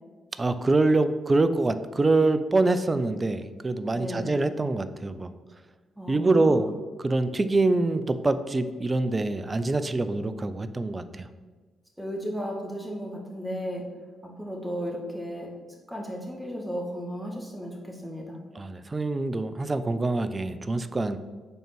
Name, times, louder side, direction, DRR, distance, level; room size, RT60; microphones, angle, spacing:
voice 1, 0.4-5.3 6.1-6.7 7.0-11.3 18.5-21.2, right 2 dB, 30° right, 12 dB, 0.5 m, -25 dB
voice 2, 3.9-4.4 6.0-6.7 12.0-13.8 14.4-15.5 15.9-18.4, equal, 5° right, 0 dB, 1.9 m, -34 dB
5.4 x 4.4 x 6.1 m, 1.4 s
hypercardioid pair, 40°, 0 cm